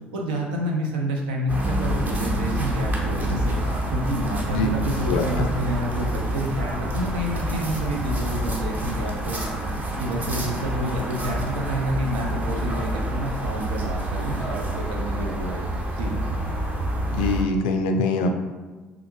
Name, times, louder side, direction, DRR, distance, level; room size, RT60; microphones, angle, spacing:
voice 1, 0.1-3.5 3.9-9.4 10.0-15.6 16.0-16.2, equal, 90° right, 0 dB, 0.5 m, -29 dB
sound 1, 1.5-17.4, right 1 dB, 35° right, 0.8 m, -27 dB
voice 2, 5.1-5.5 17.1-18.3, left 3 dB, 80° left, 5 dB, 0.3 m, -23 dB
3.4 x 2.5 x 3.0 m, 1.3 s
hypercardioid pair, 65°, 5 cm